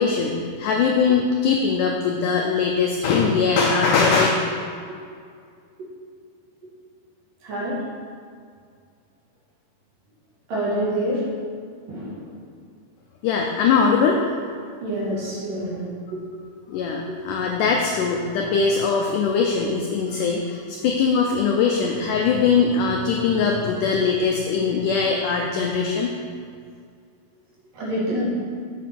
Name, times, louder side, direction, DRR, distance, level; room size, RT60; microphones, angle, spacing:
voice 1, 0.0-4.3 13.2-14.4 16.7-26.1, left 5 dB, 90° left, 1 dB, 1.8 m, -21 dB
voice 2, 7.4-7.7 10.5-11.2 11.9-12.2 14.8-16.2 17.1-17.2 27.7-28.3, right 1 dB, 60° right, -6 dB, 3.6 m, -27 dB
7.7 x 7.2 x 5.9 m, 2.2 s
omnidirectional pair, 4.6 m